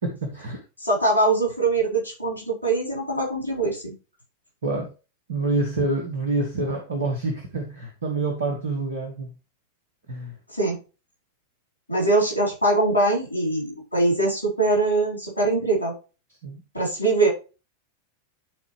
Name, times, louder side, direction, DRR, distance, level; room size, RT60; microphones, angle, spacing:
voice 1, 0.0-0.6 4.6-4.9 5.3-9.3 10.1-10.4 16.4-16.6, right 2 dB, 70° right, 2 dB, 1.6 m, -27 dB
voice 2, 0.8-3.9 10.5-10.8 11.9-15.9 16.7-17.3, right 2 dB, 90° right, -1 dB, 4.2 m, -22 dB
11.5 x 4.1 x 3.3 m, 0.31 s
figure-of-eight pair, 90°, 0 cm